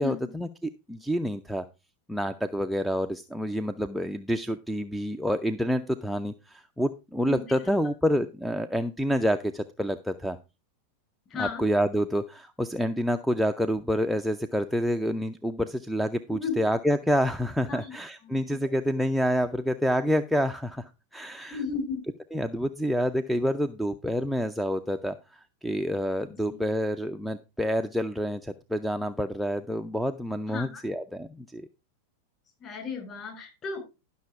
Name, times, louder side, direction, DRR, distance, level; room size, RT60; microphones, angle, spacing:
voice 1, 0.0-1.7 2.1-10.4 11.3-21.6 22.3-31.7, equal, ahead, 9 dB, 0.5 m, -28 dB
voice 2, 7.2-7.7 11.3-11.7 16.4-16.5 17.7-17.9 18.2-18.4 21.4-22.1 26.5-26.7 30.5-30.8 32.6-33.8, left 5 dB, 30° left, 2 dB, 5.3 m, -34 dB
11.5 x 6.0 x 4.6 m, 0.28 s
figure-of-eight pair, 90°, 0 cm